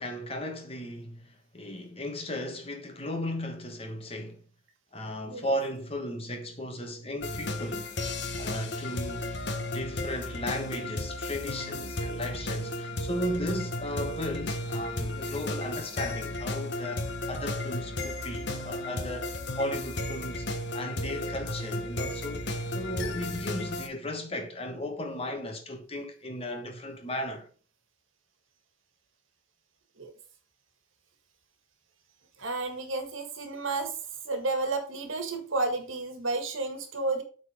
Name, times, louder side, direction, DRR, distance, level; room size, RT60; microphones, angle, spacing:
voice 1, 0.0-4.4 4.9-7.9 8.4-9.4 9.7-19.3 19.5-20.5 20.7-27.5, left 1 dB, 30° left, 1.3 m, -35 dB
sound 1, 7.2-23.9, left 1 dB, 60° left, 1.1 m, -34 dB
voice 2, 32.4-33.9 34.2-37.2, right 3 dB, 85° right, 1.8 m, -31 dB
8.3 x 4.1 x 5.0 m
head